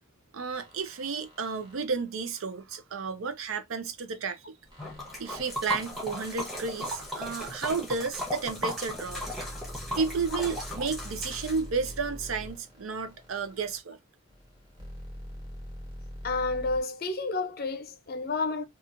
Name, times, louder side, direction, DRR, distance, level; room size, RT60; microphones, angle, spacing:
voice 1, 0.3-4.4 5.2-9.2 10.0-14.0, right 5 dB, 70° right, 0.5 m, -32 dB
sound 1, 0.5-1.9 4.7-7.6 8.4-13.8 14.3-16.8, equal, 25° right, 1.3 m, -45 dB
Liquid, 4.8-12.0, left 1 dB, ahead, 0.9 m, -36 dB
voice 2, 16.2-18.7, left 3 dB, 45° left, 0.5 m, -30 dB
2.9 x 2.4 x 2.5 m
head